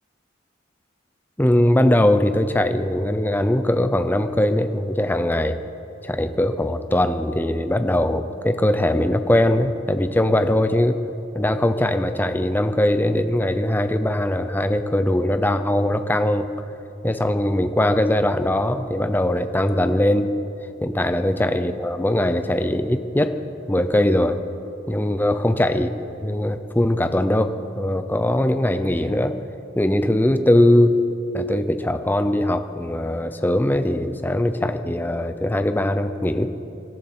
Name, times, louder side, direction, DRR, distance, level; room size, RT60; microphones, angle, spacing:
voice 1, 1.4-5.6 6.0-11.0 11.3-16.5 17.0-20.3 20.8-23.3 23.7-24.4 24.9-25.9 26.2-29.3 29.8-31.0 31.3-36.5, left 1 dB, 10° left, 9 dB, 0.6 m, -21 dB
26.0 x 12.5 x 4.3 m, 2.9 s
head